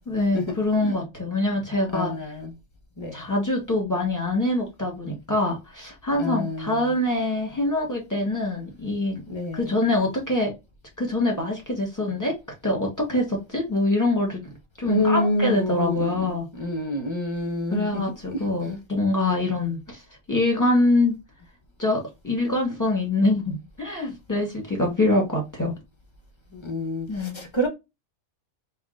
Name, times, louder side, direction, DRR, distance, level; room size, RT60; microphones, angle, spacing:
voice 1, 0.1-2.1 3.1-9.2 9.5-10.5 11.0-12.3 12.6-16.4 17.7-20.0 20.3-21.1 21.8-25.7 27.1-27.4, left 2 dB, 15° left, 1.2 m, -24 dB
voice 2, 1.9-2.5 3.0-3.2 6.2-6.9 9.3-9.7 14.8-18.0 18.3-18.4 26.5-27.7, left 1 dB, 35° left, 0.5 m, -28 dB
5.2 x 2.4 x 2.5 m
omnidirectional pair, 1.4 m